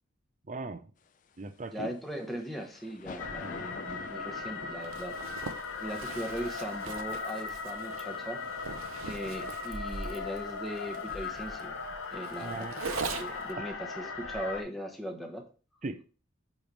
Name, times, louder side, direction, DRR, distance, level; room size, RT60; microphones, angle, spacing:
voice 1, 0.5-0.8 1.4-1.9 3.4-3.6 12.4-12.8 13.6-13.7 15.8-16.1, right 3 dB, 35° right, 0.5 m, -38 dB
sound 1, 1.1-11.1, left 3 dB, 40° left, 0.4 m, -50 dB
voice 2, 1.7-8.4 9.0-11.8 12.1-15.4, equal, ahead, 0.9 m, -39 dB
sound 2, 3.2-14.6, left 4 dB, 80° left, 0.8 m, -38 dB
Zipper (clothing), 4.8-13.5, right 5 dB, 85° right, 0.6 m, -41 dB
8.6 x 3.2 x 3.9 m
head